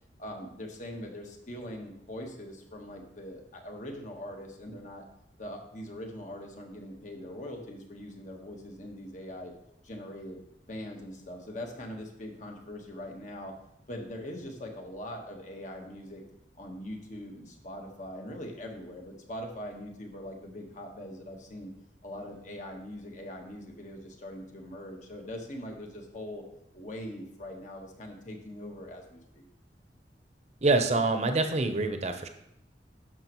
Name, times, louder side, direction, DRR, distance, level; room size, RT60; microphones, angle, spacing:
voice 1, 0.2-5.0 5.4-9.5 9.8-10.4 10.7-13.5 13.9-16.2 16.6-21.7 22.0-26.4 26.7-29.4, left 1 dB, 45° left, 2 dB, 1.4 m, -42 dB
voice 2, 30.6-32.3, right 3 dB, 40° right, 7 dB, 0.8 m, -26 dB
11.5 x 6.2 x 3.1 m, 0.78 s
head